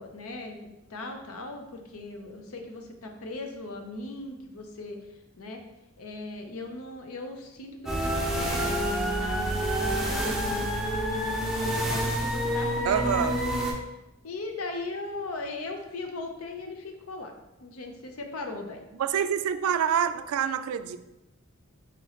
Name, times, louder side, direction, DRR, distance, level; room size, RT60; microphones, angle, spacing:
voice 1, 0.0-5.0 5.4-5.6 6.0-10.9 11.6-13.3 13.8-13.9 14.2-17.3 17.6-18.8, left 2 dB, 85° left, 4 dB, 0.7 m, -38 dB
sound 1, 7.9-13.7, equal, ahead, 0.6 m, -28 dB
voice 2, 12.8-13.4 19.0-21.0, right 8 dB, 80° right, 11 dB, 0.3 m, -26 dB
4.3 x 3.1 x 4.0 m, 0.97 s
head